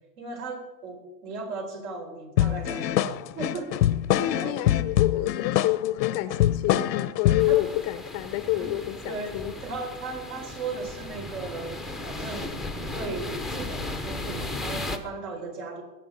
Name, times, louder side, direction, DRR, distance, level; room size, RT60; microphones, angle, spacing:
voice 1, 0.2-3.8 4.3-4.6 6.7-6.9 7.5-7.6 8.5-8.7 9.1-15.8, right 3 dB, 60° right, 3 dB, 4.4 m, -36 dB
sound 1, 2.4-7.6, left 12 dB, 80° left, 0.8 m, -24 dB
voice 2, 4.1-9.5, left 15 dB, 30° left, 13 dB, 0.6 m, -28 dB
sound 2, 7.4-15.0, left 2 dB, ahead, 0.7 m, -36 dB
19.5 x 7.9 x 5.3 m, 1.0 s
hypercardioid pair, 125°, 50 cm